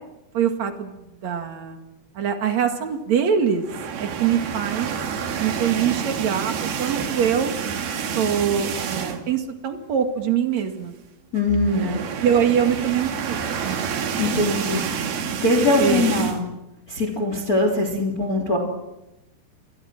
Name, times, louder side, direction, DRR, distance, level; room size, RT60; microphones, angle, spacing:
voice 1, 0.3-0.9 1.2-1.8 2.1-3.7 4.0-4.9 5.4-7.5 8.0-10.9 11.7-13.4 13.6-13.8 14.3-14.4 14.7-14.9 15.8-16.0, right 8 dB, 50° right, 6 dB, 2.8 m, -23 dB
sound 1, 3.6-9.4 9.8-9.9 10.2-10.3 11.4-16.4, right 7 dB, 65° right, 4.0 m, -28 dB
voice 2, 11.3-11.9 14.2-14.8 15.4-16.4 16.9-18.6, left 2 dB, 20° left, 3 dB, 3.4 m, -21 dB
29.0 x 24.0 x 6.2 m, 0.95 s
omnidirectional pair, 5.2 m